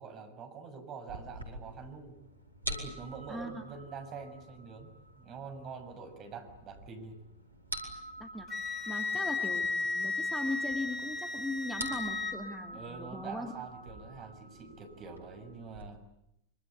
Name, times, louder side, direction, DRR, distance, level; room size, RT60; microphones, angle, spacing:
voice 1, 0.0-2.2 2.7-7.2 12.7-16.0, right 5 dB, 30° right, 7 dB, 6.5 m, -45 dB
sound 1, 1.1-15.9, right 1 dB, 85° right, 4.7 m, -46 dB
voice 2, 3.3-3.6 8.2-8.5 8.9-13.5, left 2 dB, 5° left, 5 dB, 3.0 m, -39 dB
Wind instrument woodwind instrument, 8.5-12.4, left 3 dB, 25° left, 4.1 m, -34 dB
25.5 x 25.0 x 8.6 m, 0.81 s
figure-of-eight pair, 90°, 0 cm